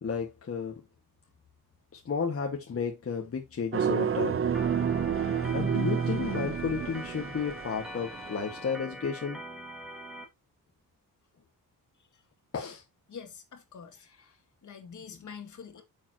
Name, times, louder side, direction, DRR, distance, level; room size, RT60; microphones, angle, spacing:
voice 1, 0.0-0.8 2.0-4.4 5.5-9.4 12.5-12.8, left 6 dB, 40° left, 1.6 m, -32 dB
sound 1, 3.7-8.6, right 7 dB, 40° right, 0.7 m, -29 dB
Organ, 4.5-10.3, equal, ahead, 2.1 m, -43 dB
voice 2, 13.1-14.1 14.6-15.8, left 6 dB, 55° left, 2.2 m, -45 dB
9.2 x 7.1 x 2.8 m
wide cardioid pair, 165°, 35 cm